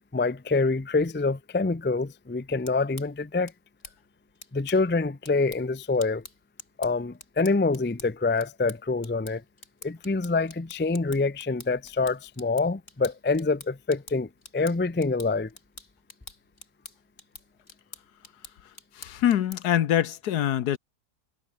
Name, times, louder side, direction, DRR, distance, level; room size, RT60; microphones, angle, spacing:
voice 1, 0.0-3.5 4.5-6.2 6.8-9.4 9.8-15.5, left 3 dB, 15° left, 0.4 m, -26 dB
sound 1, 2.5-19.8, left 3 dB, 50° left, 3.5 m, -49 dB
voice 2, 18.9-20.8, left 11 dB, 75° left, 1.4 m, -24 dB
omnidirectional pair, 1.7 m